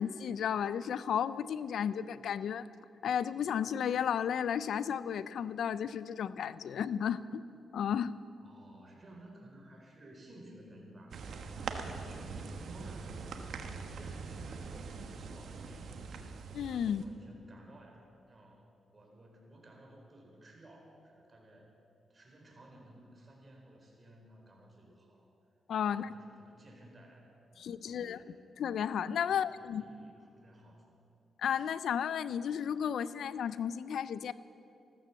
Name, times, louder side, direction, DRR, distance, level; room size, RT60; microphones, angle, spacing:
voice 1, 0.0-2.7 3.0-7.4 7.7-8.1 16.5-17.0 25.7-26.1 27.6-29.8 31.4-34.3, left 8 dB, 80° left, 16 dB, 0.4 m, -33 dB
voice 2, 8.4-16.2 16.8-18.7 18.9-21.7 22.1-25.2 25.8-28.3 29.3-31.0, right 1 dB, 35° right, 0 dB, 4.1 m, -55 dB
sound 1, 11.1-17.1, right 4 dB, 70° right, 1.2 m, -43 dB
15.0 x 13.5 x 7.0 m, 2.6 s
cardioid pair, 75°, 0 cm